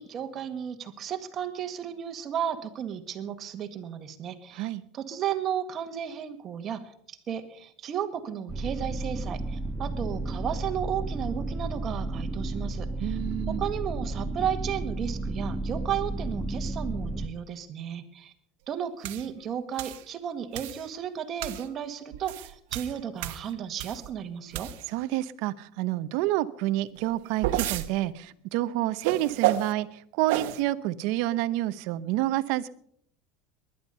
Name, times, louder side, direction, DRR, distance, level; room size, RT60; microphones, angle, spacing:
voice 1, 0.0-4.7 4.9-13.2 13.5-18.3 18.7-24.7, right 9 dB, 35° right, 7 dB, 1.8 m, -34 dB
sound 1, 8.5-17.3, right 2 dB, 10° right, 1.3 m, -32 dB
voice 2, 13.0-13.6 24.9-32.7, right 15 dB, 65° right, 14 dB, 0.8 m, -28 dB
sound 2, 19.0-19.3 19.8-20.0 20.5-20.9 21.4-21.7 22.1-24.1 24.5-25.0 27.0-27.9 29.0-29.7 30.3-30.6, right 13 dB, 80° right, 1.1 m, -30 dB
20.0 x 11.0 x 5.5 m, 0.65 s
supercardioid pair, 140°, 0 cm